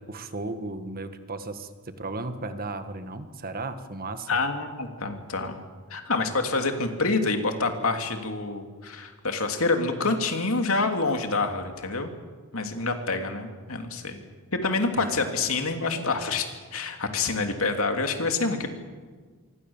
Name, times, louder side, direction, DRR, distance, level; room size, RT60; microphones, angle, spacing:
voice 1, 0.1-4.3 15.0-15.3, right 2 dB, 45° right, 9 dB, 1.6 m, -35 dB
voice 2, 4.3-5.5 5.9-12.1 12.5-14.2 14.5-18.7, left 3 dB, 70° left, 5 dB, 2.9 m, -27 dB
26.5 x 24.0 x 7.3 m, 1.5 s
head